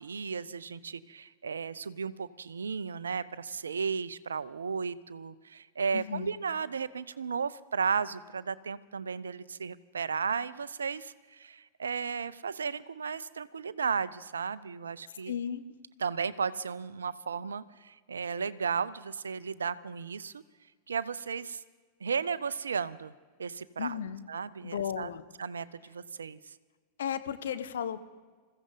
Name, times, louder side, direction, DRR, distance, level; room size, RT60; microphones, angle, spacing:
voice 1, 0.0-15.3 16.0-20.4 20.9-21.6 22.0-23.1 23.4-24.0 24.3-25.1 25.4-26.5, right 6 dB, 70° right, 17 dB, 0.5 m, -34 dB
voice 2, 5.9-6.3 15.3-15.7 23.8-24.2 24.6-25.2 27.0-28.0, left 9 dB, 65° left, 11 dB, 0.8 m, -34 dB
21.0 x 15.0 x 3.9 m, 1.5 s
figure-of-eight pair, 90°, 0 cm